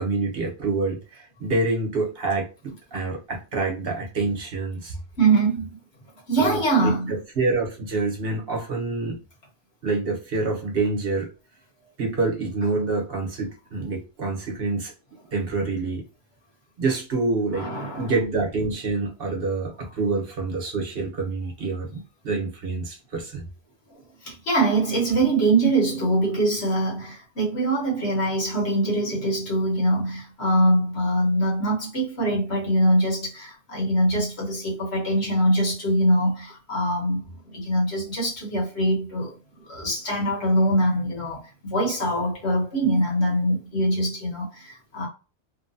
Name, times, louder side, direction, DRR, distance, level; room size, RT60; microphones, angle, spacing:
voice 1, 0.0-4.9 6.4-9.2 9.8-11.3 12.0-14.9 15.3-16.0 16.8-17.7 18.0-23.5, right 3 dB, 60° right, 1.1 m, -27 dB
voice 2, 5.2-5.8 6.3-7.1 17.6-18.1 24.2-45.1, right 1 dB, 65° left, 1.4 m, -23 dB
3.0 x 2.2 x 2.6 m
omnidirectional pair, 1.2 m